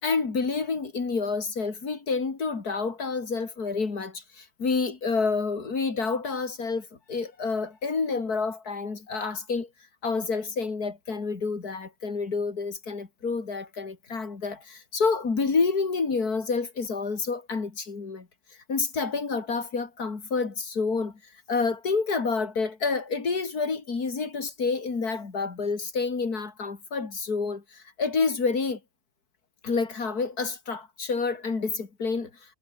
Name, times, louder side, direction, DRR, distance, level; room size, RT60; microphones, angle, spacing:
voice 1, 0.0-9.7 10.0-18.3 18.7-21.2 21.5-28.8 29.6-32.3, left 4 dB, 85° left, 3.4 m, -28 dB
omnidirectional pair, 1.6 m